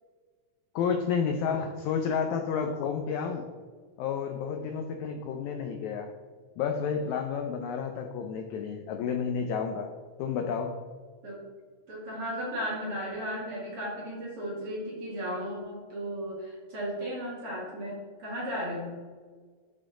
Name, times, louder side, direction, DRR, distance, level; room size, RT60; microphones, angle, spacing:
voice 1, 0.7-3.4 4.0-6.1 6.6-9.9 10.2-10.7, left 6 dB, 90° left, 4 dB, 1.6 m, -30 dB
voice 2, 11.9-18.9, equal, 45° right, -5 dB, 2.3 m, -35 dB
12.0 x 4.3 x 3.8 m, 1.5 s
omnidirectional pair, 4.0 m